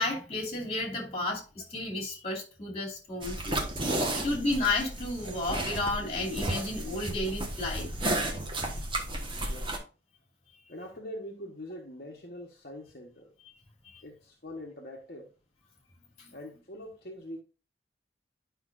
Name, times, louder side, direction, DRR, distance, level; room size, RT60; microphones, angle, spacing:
voice 1, 0.0-3.6 4.1-7.9 13.9-14.0 16.2-16.3, left 2 dB, 35° left, 2.6 m, -32 dB
sound 1, 3.2-9.8, right 1 dB, 30° right, 1.3 m, -33 dB
voice 2, 9.3-9.8 10.7-13.3 14.0-15.3 16.3-17.4, left 1 dB, 55° left, 1.2 m, -43 dB
10.5 x 5.7 x 2.5 m
head